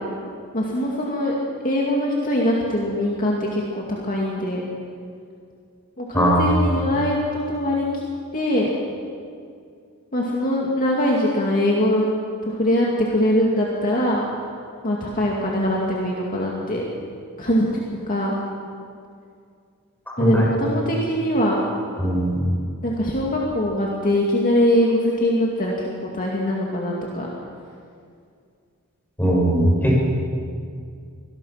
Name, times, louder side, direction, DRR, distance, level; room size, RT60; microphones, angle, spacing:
voice 1, 0.5-1.3 1.6-3.6 4.0-4.6 6.0-8.1 8.3-8.7 10.1-12.1 12.5-14.2 14.8-16.8 17.4-17.7 18.1-18.3 20.2-21.6 22.8-27.3, left 1 dB, 40° left, -3 dB, 2.4 m, -22 dB
voice 2, 6.1-6.6 20.2-20.5 22.0-22.4 29.2-30.0, right 1 dB, 10° left, -4 dB, 6.4 m, -19 dB
24.5 x 19.0 x 5.9 m, 2.3 s
head